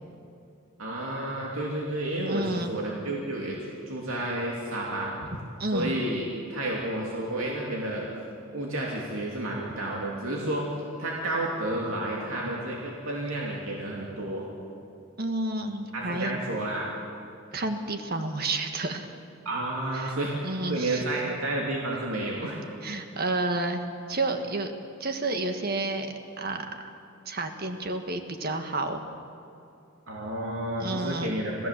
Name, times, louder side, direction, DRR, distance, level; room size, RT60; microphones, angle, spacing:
voice 1, 0.8-5.1 5.7-6.2 6.5-8.1 8.5-10.6 11.0-14.5 15.9-16.9 19.4-22.6 30.1-31.7, right 1 dB, 80° right, -3 dB, 2.8 m, -31 dB
voice 2, 2.3-2.7 5.6-5.9 15.2-16.4 17.5-19.1 20.0-20.1 20.4-21.0 22.8-23.8 24.1-24.7 25.0-26.1 26.4-26.6 27.2-29.0 30.8-31.3, right 2 dB, 45° right, 6 dB, 1.7 m, -30 dB
26.5 x 16.0 x 7.5 m, 2.5 s
head